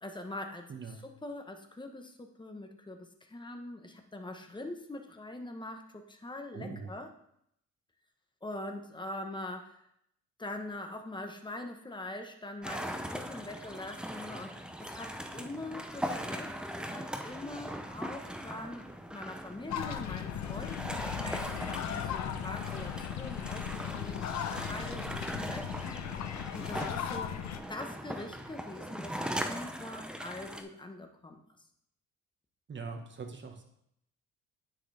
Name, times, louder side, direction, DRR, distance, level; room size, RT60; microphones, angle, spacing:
voice 1, 0.0-7.1 8.4-9.8 10.4-18.9 19.1-25.7 26.5-27.4 27.7-31.4, left 2 dB, 15° left, 5 dB, 1.2 m, -43 dB
voice 2, 0.7-1.0 6.5-6.9 32.7-33.6, right 4 dB, 40° right, 4 dB, 1.5 m, -42 dB
sound 1, 12.6-30.6, equal, 5° right, 0.7 m, -40 dB
sound 2, 19.7-27.6, left 9 dB, 65° left, 0.8 m, -37 dB
9.5 x 6.0 x 3.5 m, 0.73 s
cardioid pair, 90°, 30 cm